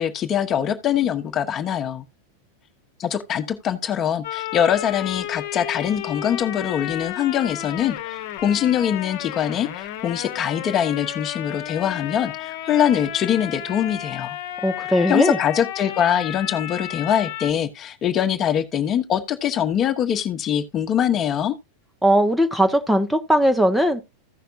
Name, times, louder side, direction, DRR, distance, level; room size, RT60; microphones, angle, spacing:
voice 1, 0.0-2.0 3.0-14.4 15.1-21.5, left 9 dB, 30° left, 1.3 m, -23 dB
sound 1, 4.2-17.5, left 12 dB, 50° left, 1.3 m, -33 dB
voice 2, 14.6-15.4 22.0-24.0, equal, ahead, 1.1 m, -19 dB
15.5 x 5.8 x 2.6 m
figure-of-eight pair, 90°, 0 cm